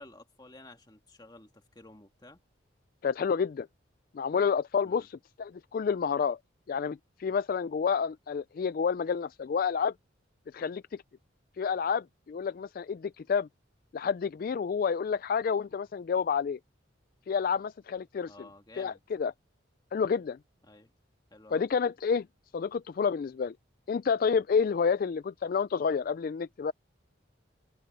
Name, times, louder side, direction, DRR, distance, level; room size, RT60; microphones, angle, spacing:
voice 1, 0.0-2.4 4.8-5.1 18.3-19.0 20.6-20.9 21.3-21.7, left 2 dB, 20° left, 1.9 m, -52 dB
voice 2, 3.0-3.7 4.1-6.4 6.7-9.9 10.5-11.0 11.6-13.5 13.9-16.6 17.3-18.3 18.8-19.3 19.9-20.4 21.5-22.3 22.5-23.5 23.9-26.7, left 6 dB, 45° left, 0.3 m, -29 dB
head